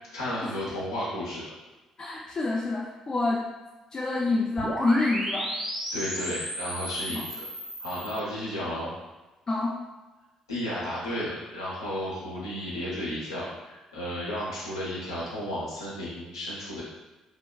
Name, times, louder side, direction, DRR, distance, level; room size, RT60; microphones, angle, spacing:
voice 1, 0.1-1.5 5.9-7.4 7.8-8.9 10.5-16.8, equal, 85° left, -8 dB, 0.7 m, -33 dB
voice 2, 2.0-3.5 3.9-5.5 7.1-7.2 9.5-9.8, left 2 dB, 30° left, -4 dB, 0.4 m, -27 dB
sound 1, 4.6-8.2, equal, 20° right, 0.8 m, -33 dB
3.3 x 2.2 x 2.2 m, 1.1 s
figure-of-eight pair, 45°, 2 cm